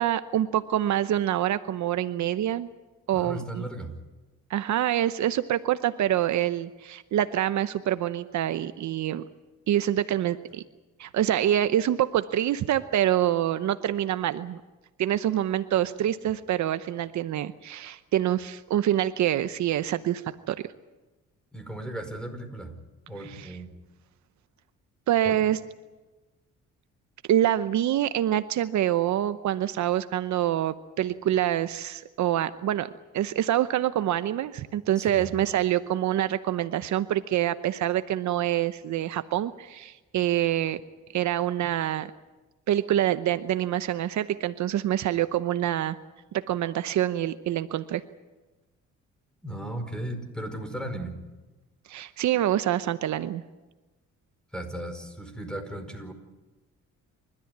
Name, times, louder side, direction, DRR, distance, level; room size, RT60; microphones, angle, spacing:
voice 1, 0.0-2.7 3.1-3.6 4.5-9.2 9.7-10.6 11.0-14.6 15.0-20.2 20.5-20.6 23.2-23.5 25.1-25.6 27.3-32.9 33.1-40.8 41.1-42.1 42.7-46.0 46.3-48.0 51.9-53.4, right 12 dB, 70° right, 12 dB, 0.9 m, -26 dB
voice 2, 3.1-3.9 21.5-22.7 23.1-23.7 25.3-25.4 35.0-35.3 49.4-51.2 54.5-56.1, right 1 dB, 5° left, 7 dB, 5.0 m, -36 dB
28.5 x 13.5 x 9.5 m, 1.2 s
cardioid pair, 90°, 30 cm